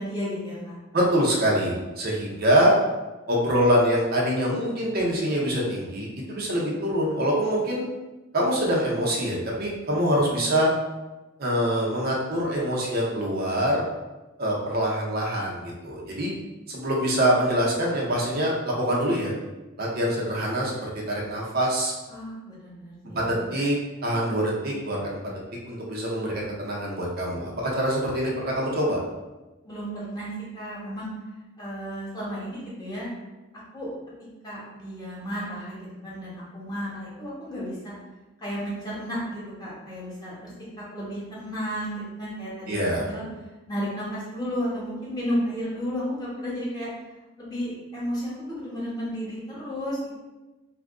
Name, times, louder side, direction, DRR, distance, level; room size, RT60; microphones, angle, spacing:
voice 1, 0.0-0.8 22.1-23.4 29.6-31.1 31.6-33.1 33.7-33.9 34.2-37.9 38.4-43.3 43.7-46.9 47.4-50.1, equal, 20° left, -7 dB, 1.0 m, -33 dB
voice 2, 0.9-2.7 3.3-7.8 8.3-10.7 11.4-13.8 14.4-16.3 16.7-19.3 19.8-21.9 23.1-23.8 24.0-25.2 25.6-29.0 42.7-43.1, equal, 50° right, -3 dB, 0.6 m, -24 dB
2.7 x 2.5 x 3.5 m, 1.1 s
head